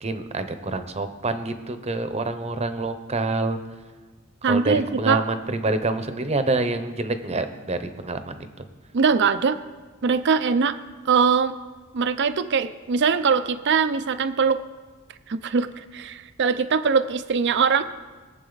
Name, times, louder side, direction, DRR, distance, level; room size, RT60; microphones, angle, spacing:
voice 1, 0.0-3.6 4.5-8.7, right 2 dB, 30° right, 9 dB, 0.8 m, -27 dB
voice 2, 4.4-5.2 8.9-9.6 10.0-10.8 11.1-11.5 11.9-14.6 15.3-17.8, right 5 dB, 55° right, 12 dB, 0.5 m, -22 dB
21.5 x 7.4 x 4.0 m, 1.3 s
head